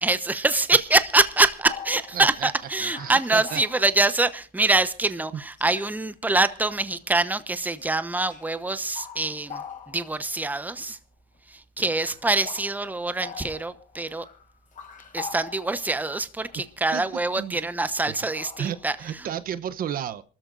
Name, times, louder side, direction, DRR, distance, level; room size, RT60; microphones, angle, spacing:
voice 1, 0.0-11.0 11.5-14.3 15.1-19.2, right 2 dB, 10° right, 1.0 m, -24 dB
sound 1, 1.3-1.4 1.6-4.3 5.2-5.3 5.6-6.1 6.9-7.2 7.8-7.9 8.2-8.6 8.9-10.3 11.3-11.4 11.8-16.0 16.4-16.7 16.9-17.1 18.1-19.0, left 6 dB, 50° left, 5.9 m, -43 dB
voice 2, 2.1-2.5 2.8-3.6 16.9-17.0 17.4-17.6 18.1-18.2 18.6-20.2, right 10 dB, 60° right, 0.9 m, -32 dB
27.0 x 13.5 x 2.6 m
cardioid pair, 110°, 17 cm